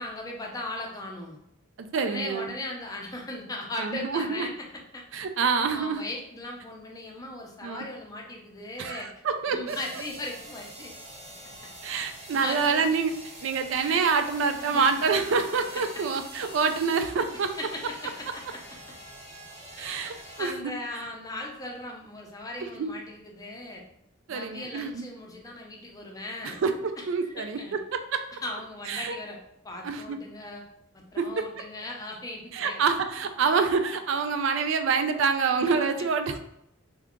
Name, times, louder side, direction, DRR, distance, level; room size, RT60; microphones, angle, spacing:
voice 1, 0.0-1.4 1.9-4.6 4.9-5.0 5.7-9.1 9.5-10.9 12.3-12.8 14.6-15.2 15.7-15.8 17.6-18.6 19.8-23.8 24.3-26.6 27.2-27.8 28.4-29.4 29.6-30.6 30.9-32.8, left 2 dB, 15° left, 0 dB, 0.5 m, -38 dB
voice 2, 1.9-2.5 3.8-4.5 5.1-6.0 7.6-7.8 8.8-9.8 11.8-13.1 13.4-17.5 19.8-20.5 22.8-22.9 24.3-25.1 26.4-27.6 27.9-28.2 28.9-29.2 29.8-30.2 31.2-31.3 32.5-36.4, right 5 dB, 65° right, 7 dB, 0.4 m, -26 dB
sound 1, 9.7-20.5, right 1 dB, 30° right, 0.7 m, -45 dB
2.8 x 2.3 x 3.5 m, 0.79 s
head